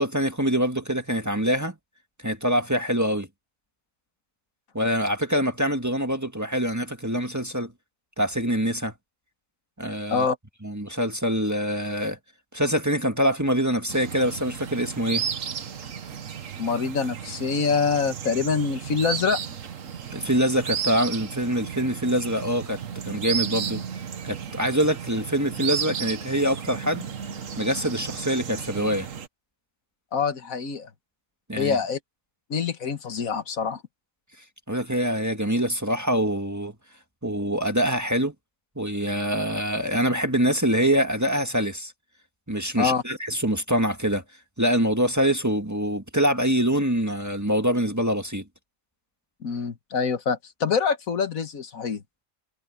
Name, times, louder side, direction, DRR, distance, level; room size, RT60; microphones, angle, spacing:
voice 1, 0.0-1.7 2.2-3.3 4.7-7.7 8.2-8.9 9.8-10.3 10.6-12.2 12.5-15.3 20.1-22.8 23.0-23.8 24.2-27.1 27.6-29.1 31.5-31.8 34.7-36.7 37.2-38.3 38.7-41.9 42.5-44.2 44.6-48.4, equal, 15° right, 1.6 m, -24 dB
sound 1, 13.9-29.3, right 7 dB, 75° right, 1.5 m, -33 dB
voice 2, 16.6-19.4 30.1-30.9 31.6-32.0 32.5-33.8 42.8-43.0 49.4-52.0, left 5 dB, 90° left, 1.9 m, -25 dB
omnidirectional pair, 1.4 m